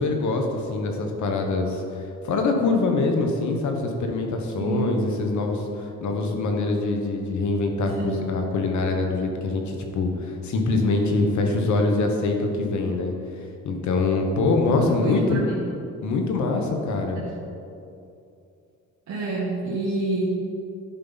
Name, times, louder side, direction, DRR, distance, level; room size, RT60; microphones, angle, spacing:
voice 1, 0.0-1.8 2.2-13.1 13.6-15.4 16.0-17.2, left 3 dB, 70° left, 3 dB, 1.2 m, -24 dB
voice 2, 4.6-4.9 7.9-8.2 14.7-15.6 17.2-17.3 19.1-20.2, right 2 dB, 65° right, -6 dB, 1.5 m, -28 dB
10.5 x 5.5 x 4.1 m, 2.6 s
cardioid pair, 90°, 30 cm